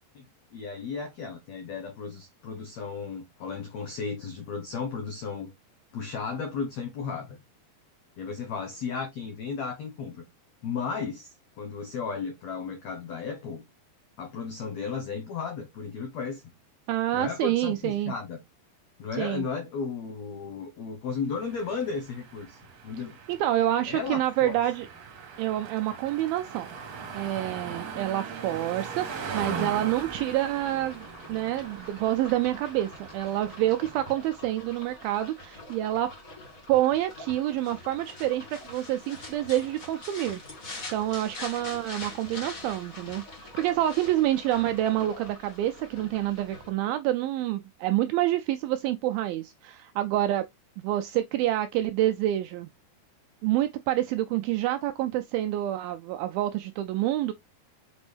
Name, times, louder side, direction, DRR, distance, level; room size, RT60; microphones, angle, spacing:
voice 1, 0.5-5.5 5.9-7.4 8.2-10.2 10.6-13.6 14.2-16.4 17.1-18.4 19.0-23.2 23.9-24.6, left 5 dB, 80° left, 1.5 m, -34 dB
voice 2, 16.9-18.1 19.1-19.5 23.3-24.9 25.4-26.7 27.1-36.1 36.7-40.4 40.9-50.5 50.8-52.7 53.4-57.3, right 13 dB, 85° right, 2.1 m, -27 dB
sound 1, 21.4-34.3, right 5 dB, 55° right, 1.8 m, -40 dB
sound 2, 29.9-46.7, left 2 dB, 40° left, 1.3 m, -44 dB
6.1 x 5.2 x 3.3 m
omnidirectional pair, 4.7 m